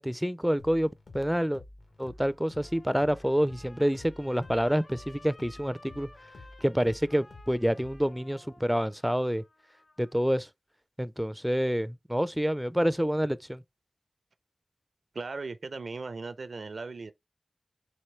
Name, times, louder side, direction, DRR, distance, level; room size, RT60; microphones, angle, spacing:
voice 1, 0.0-1.6 2.0-6.1 6.6-9.4 10.0-10.5 11.0-13.6, equal, 5° right, 0.4 m, -28 dB
sound 1, 0.6-8.3, left 2 dB, 70° left, 1.3 m, -51 dB
Trumpet, 1.9-10.3, left 2 dB, 55° left, 2.2 m, -55 dB
voice 2, 15.1-17.1, right 3 dB, 75° right, 0.5 m, -37 dB
4.3 x 3.0 x 3.2 m
cardioid pair, 45°, 0 cm